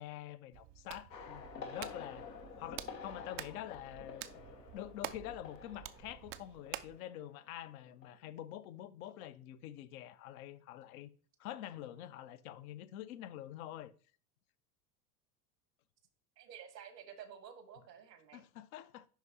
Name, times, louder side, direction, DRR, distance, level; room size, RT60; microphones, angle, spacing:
voice 1, 0.0-2.3 2.6-4.3 4.7-11.1 11.4-13.9 18.3-19.1, left 12 dB, 60° left, 0.7 m, -46 dB
Hands, 0.5-7.0, right 14 dB, 30° right, 0.3 m, -49 dB
sound 1, 1.1-7.6 7.8-8.2, left 5 dB, 85° left, 1.2 m, -50 dB
voice 2, 16.4-18.4, right 8 dB, 80° right, 1.3 m, -52 dB
10.5 x 3.8 x 2.8 m
hypercardioid pair, 80°, 48 cm